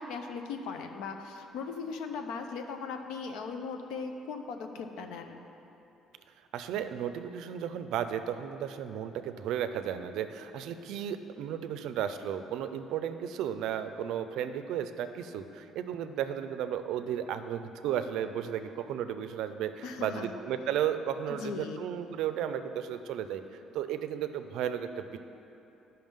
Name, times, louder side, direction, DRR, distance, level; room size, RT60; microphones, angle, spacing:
voice 1, 0.0-5.4 19.8-20.3 21.3-21.8, left 5 dB, 85° left, 5 dB, 0.6 m, -38 dB
voice 2, 6.5-25.2, right 9 dB, 70° right, 10 dB, 0.4 m, -34 dB
11.5 x 5.6 x 3.7 m, 2.9 s
cardioid pair, 165°, 0 cm